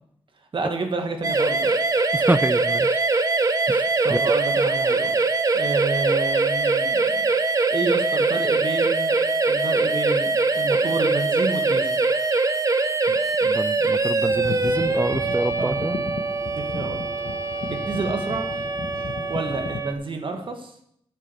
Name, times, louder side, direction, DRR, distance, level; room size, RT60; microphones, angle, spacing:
voice 1, 0.5-1.7 4.0-5.1 5.5-9.2 9.5-10.3 10.5-12.0 15.6-15.8 16.7-17.0 17.7-18.5 19.3-20.7, right 3 dB, 55° right, 4 dB, 1.8 m, -29 dB
sound 1, 1.2-19.9, right 3 dB, 35° right, 0.8 m, -23 dB
voice 2, 2.1-3.0 3.7-4.2 13.1-16.0, right 2 dB, 15° right, 13 dB, 0.4 m, -27 dB
sound 2, 14.3-19.8, left 4 dB, 65° left, 1.2 m, -34 dB
9.0 x 7.6 x 6.9 m, 0.69 s
wide cardioid pair, 115°, 10 cm